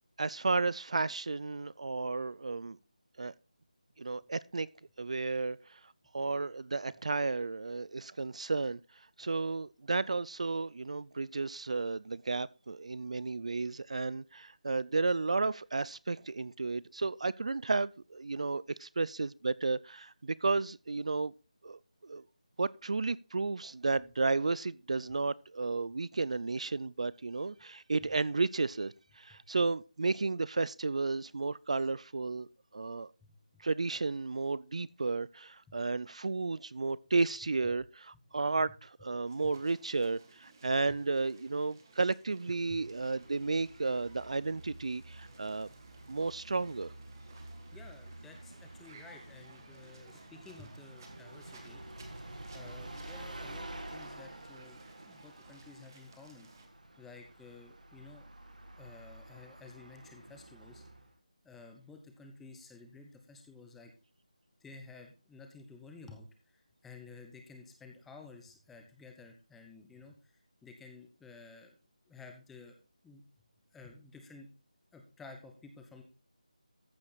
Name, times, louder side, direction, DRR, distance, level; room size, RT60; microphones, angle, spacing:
voice 1, 0.2-2.8 3.2-3.3 4.0-4.7 5.0-5.8 6.1-8.8 9.2-21.3 21.6-22.2 22.6-32.5 32.7-33.1 33.6-45.7 46.1-46.9, right 3 dB, 60° right, 0.4 m, -33 dB
sound 1, 39.3-56.7, right 4 dB, 30° right, 1.8 m, -59 dB
Bus, 42.6-61.2, right 1 dB, 90° right, 2.2 m, -50 dB
voice 2, 47.7-51.8 52.5-56.5 57.0-58.3 58.8-60.8 61.4-63.9 64.6-71.8 72.1-72.8 73.0-73.2 73.7-74.5 74.9-76.0, left 4 dB, 5° left, 0.8 m, -53 dB
14.0 x 4.9 x 4.0 m
figure-of-eight pair, 170°, 4 cm